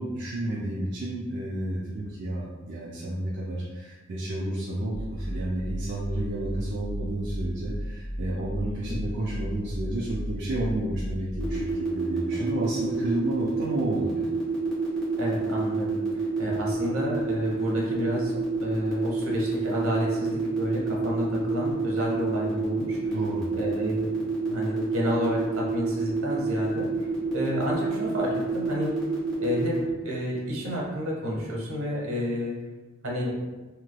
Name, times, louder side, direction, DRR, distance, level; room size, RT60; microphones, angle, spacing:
voice 1, 0.0-14.3 23.1-23.5, right 1 dB, 55° right, -6 dB, 0.4 m, -31 dB
sound 1, 4.9-11.7, equal, 65° left, 0.6 m, -34 dB
sound 2, 11.4-29.8, right 4 dB, ahead, 1.1 m, -28 dB
voice 2, 15.2-23.0 23.5-24.2 24.4-29.0 29.4-32.6 33.0-33.4, equal, 85° right, -3 dB, 0.9 m, -30 dB
3.3 x 2.9 x 2.2 m, 1.2 s
head